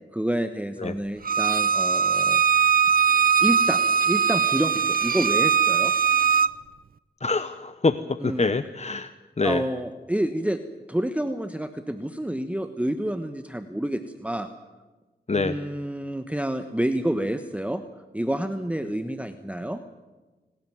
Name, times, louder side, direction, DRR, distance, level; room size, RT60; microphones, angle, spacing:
voice 1, 0.1-2.7 3.4-5.9 8.2-8.6 9.4-10.6 10.9-14.5 15.3-17.8 18.1-19.8, right 1 dB, 5° right, 9 dB, 1.2 m, -28 dB
Bowed string instrument, 1.2-6.5, right 6 dB, 50° right, 0.7 m, -21 dB
voice 2, 7.2-8.0 8.2-9.1 9.4-9.6 15.3-15.5, left 3 dB, 35° left, 12 dB, 0.8 m, -25 dB
26.5 x 13.0 x 9.4 m, 1.3 s
cardioid pair, 50°, 19 cm